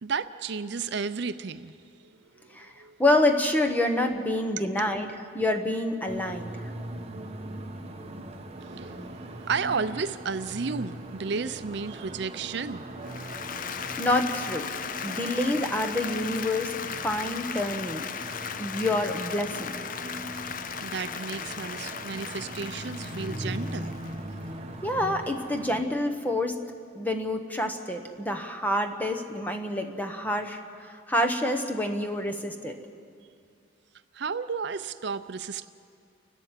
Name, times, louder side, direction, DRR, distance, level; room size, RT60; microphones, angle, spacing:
voice 1, 0.0-1.7 2.0-2.5 2.8-3.0 8.6-12.8 20.8-23.9 34.1-35.7, right 5 dB, 55° right, 0.5 m, -33 dB
voice 2, 3.0-6.6 14.0-14.7 15.0-18.1 18.6-19.7 24.8-26.5 26.9-32.8, left 1 dB, 10° left, 1.1 m, -27 dB
sound 1, 6.1-25.8, right 1 dB, 30° right, 1.1 m, -40 dB
Applause, 13.0-24.4, left 8 dB, 45° left, 0.5 m, -37 dB
29.0 x 12.5 x 7.5 m
head